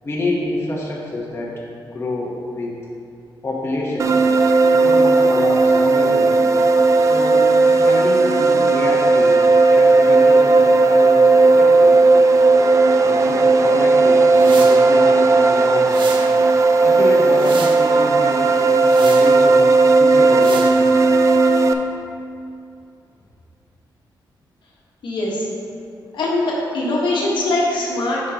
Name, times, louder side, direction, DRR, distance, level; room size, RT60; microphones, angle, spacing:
voice 1, 0.0-1.5 1.8-2.7 3.4-4.3 4.7-6.4 7.0-9.4 9.7-12.0 13.0-16.0 16.8-20.9, left 2 dB, 30° left, -4 dB, 1.0 m, -27 dB
sound 1, 4.0-21.7, right 3 dB, 40° right, 0.3 m, -14 dB
sound 2, 14.3-14.8 15.8-16.3 17.0-17.8 18.8-19.3 20.4-20.7, right 4 dB, 90° right, 0.7 m, -33 dB
voice 2, 25.0-25.5 26.1-28.2, left 2 dB, 75° left, -4 dB, 1.3 m, -21 dB
7.4 x 6.3 x 2.9 m, 2.4 s
wide cardioid pair, 130°, 8 cm